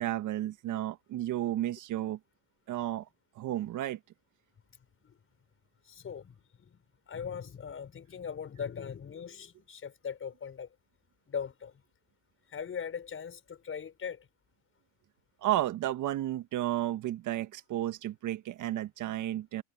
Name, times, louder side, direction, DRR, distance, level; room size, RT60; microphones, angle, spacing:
voice 1, 0.0-2.2 2.7-3.0 3.3-4.0 15.4-19.6, right 13 dB, 50° right, 1.5 m, -32 dB
voice 2, 5.8-10.7 11.3-11.7 12.5-14.3, left 7 dB, 30° left, 6.0 m, -40 dB
supercardioid pair, 100°, 40 cm